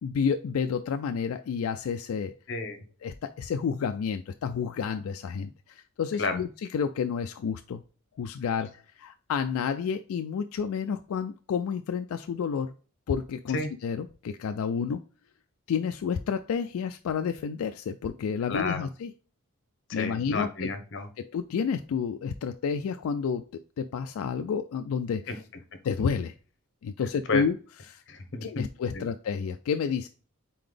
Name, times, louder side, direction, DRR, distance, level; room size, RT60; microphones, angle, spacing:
voice 1, 0.0-2.3 3.0-7.8 8.2-12.7 13.1-15.0 15.7-19.1 19.9-20.7 21.2-25.4 25.8-26.3 26.8-27.6 27.9-28.0 28.4-30.1, left 6 dB, 85° left, 8 dB, 0.3 m, -30 dB
voice 2, 2.5-2.8 6.2-6.4 13.5-13.7 18.5-18.9 20.0-21.1 25.3-25.4 27.0-27.4 28.1-28.6 28.9-29.1, left 3 dB, 55° left, 7 dB, 0.8 m, -31 dB
4.2 x 3.9 x 3.3 m, 0.38 s
head